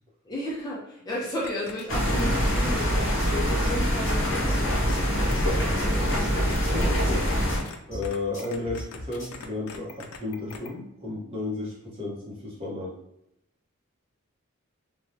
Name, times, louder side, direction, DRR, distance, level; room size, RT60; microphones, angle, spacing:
voice 1, 0.2-5.2, equal, 20° left, -5 dB, 0.5 m, -34 dB
sound 1, 1.4-5.0 5.3-5.4 5.6-6.2 6.5-7.8 8.0-10.7, left 5 dB, 85° left, 0.4 m, -42 dB
sound 2, 1.9-7.6, equal, 60° left, 0.9 m, -24 dB
sound 3, 2.8-9.4, left 1 dB, 35° left, 1.1 m, -38 dB
voice 2, 5.7-7.3 7.9-12.9, left 2 dB, 25° right, -5 dB, 0.7 m, -34 dB
3.1 x 2.2 x 2.6 m, 0.82 s
head